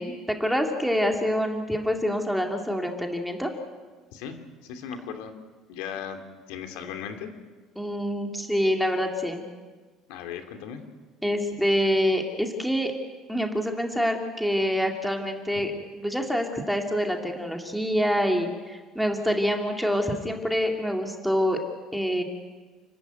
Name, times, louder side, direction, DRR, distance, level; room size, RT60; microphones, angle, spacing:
voice 1, 0.0-3.5 7.8-9.5 11.2-12.9 13.3-21.6 21.9-22.2, equal, ahead, 2 dB, 2.3 m, -26 dB
voice 2, 4.6-5.3 5.7-6.2 6.5-7.3 10.1-10.8, left 8 dB, 85° left, 6 dB, 2.7 m, -36 dB
29.0 x 14.0 x 9.3 m, 1.4 s
cardioid pair, 135°, 0 cm